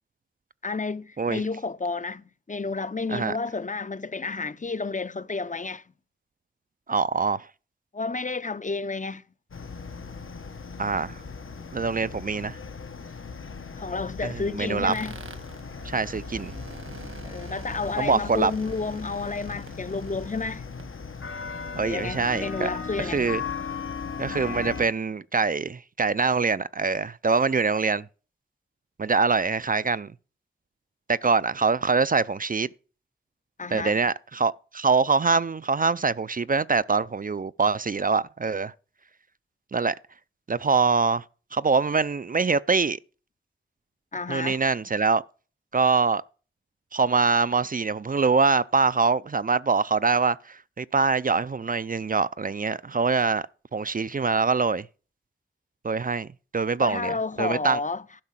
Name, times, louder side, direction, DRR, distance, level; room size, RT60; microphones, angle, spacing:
voice 1, 0.6-5.8 7.9-9.2 13.8-15.2 17.2-20.6 21.8-23.2 33.6-34.0 44.1-44.6 56.8-58.0, left 4 dB, 35° left, 0.6 m, -31 dB
voice 2, 6.9-7.5 10.8-11.2 11.7-12.6 14.2-14.9 15.8-16.5 18.0-18.5 21.7-22.7 23.0-23.4 24.2-28.1 29.0-30.1 31.1-32.7 33.7-38.7 39.7-40.0 40.5-41.2 41.5-43.0 44.3-45.2 45.7-46.2 46.9-53.4 53.7-54.9 55.8-56.3 56.5-57.8, right 4 dB, 40° right, 0.4 m, -24 dB
sound 1, 9.5-24.9, left 5 dB, 75° left, 1.1 m, -38 dB
sound 2, 14.9-20.8, right 3 dB, 75° right, 1.7 m, -45 dB
12.0 x 5.5 x 7.4 m
wide cardioid pair, 45°, 21 cm